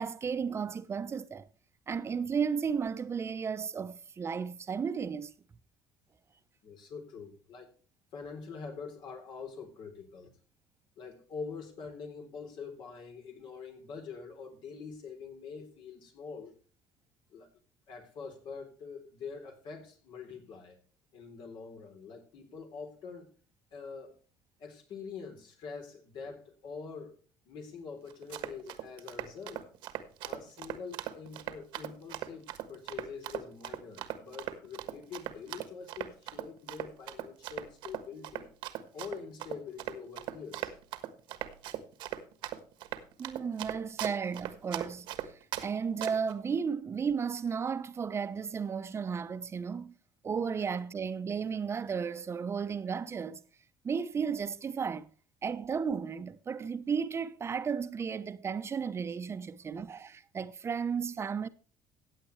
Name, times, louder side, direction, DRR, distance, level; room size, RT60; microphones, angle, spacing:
voice 1, 0.0-1.5 1.9-5.3 43.2-45.3 45.6-49.9 50.2-53.4 53.8-55.1 55.4-61.5, right 6 dB, 30° right, 0.9 m, -34 dB
voice 2, 6.6-7.7 8.1-10.3 11.0-16.5 17.3-17.5 17.9-20.8 21.1-23.3 23.7-24.2 24.6-27.2 27.5-29.7 30.2-38.5 38.9-40.8, left 5 dB, 65° left, 3.7 m, -45 dB
Run, 28.1-45.7 46.0-46.3, right 13 dB, 75° right, 1.4 m, -39 dB
15.5 x 8.7 x 3.3 m
cardioid pair, 100°, 8 cm